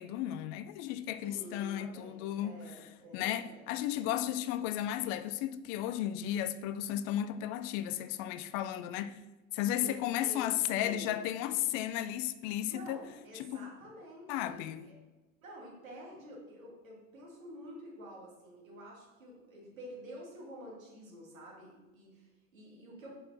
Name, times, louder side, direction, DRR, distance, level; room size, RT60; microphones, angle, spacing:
voice 1, 0.0-2.6 3.1-9.2 9.5-13.0 13.3-13.7 14.3-14.9, left 12 dB, 45° left, 0.4 m, -34 dB
voice 2, 1.2-3.7 9.8-11.2 12.7-15.0 15.4-23.1, equal, 80° right, 2.7 m, -49 dB
5.4 x 5.3 x 5.9 m
figure-of-eight pair, 75°, 40 cm